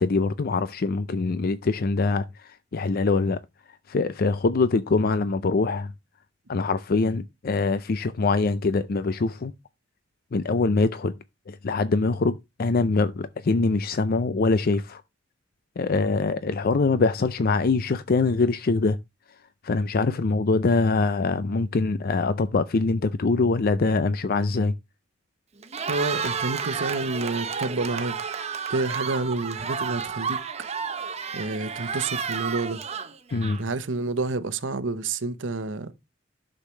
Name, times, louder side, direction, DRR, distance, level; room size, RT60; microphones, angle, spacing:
voice 1, 0.0-3.4 3.9-5.9 6.5-9.5 10.3-11.1 11.5-15.0 15.8-19.0 19.6-24.8 33.3-33.6, left 3 dB, 50° left, 0.5 m, -23 dB
Cheering, 25.6-33.9, right 6 dB, 35° right, 0.9 m, -31 dB
voice 2, 25.9-28.2 28.7-30.4 31.3-32.8 33.6-35.9, right 3 dB, 70° right, 0.9 m, -29 dB
11.5 x 6.6 x 3.2 m
head